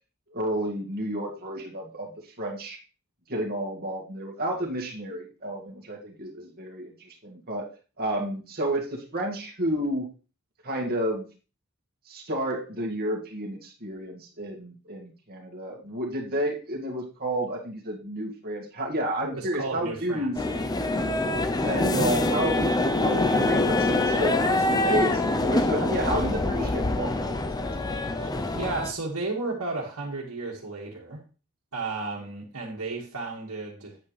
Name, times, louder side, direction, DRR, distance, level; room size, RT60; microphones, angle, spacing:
voice 1, 0.3-2.8 3.3-7.7 8.0-10.1 10.6-11.3 12.1-20.4 21.6-22.7 23.0-28.4, right 1 dB, 45° right, -1 dB, 2.1 m, -31 dB
voice 2, 19.2-20.7 28.5-31.2 31.7-34.0, right 3 dB, 80° right, -6 dB, 2.0 m, -33 dB
sound 1, 20.3-28.9, left 2 dB, 20° left, 0.6 m, -25 dB
8.8 x 8.2 x 3.3 m, 0.34 s
head